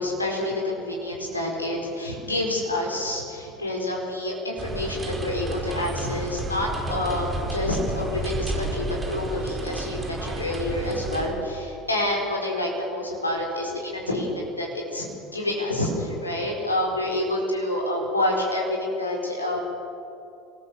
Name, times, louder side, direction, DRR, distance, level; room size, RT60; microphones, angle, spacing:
voice 1, 0.0-15.0 15.3-19.6, left 1 dB, 85° left, -1 dB, 4.6 m, -28 dB
sound 1, 4.6-11.3, right 2 dB, 15° right, 4.9 m, -31 dB
26.5 x 20.0 x 6.9 m, 2.7 s
figure-of-eight pair, 70°, 0 cm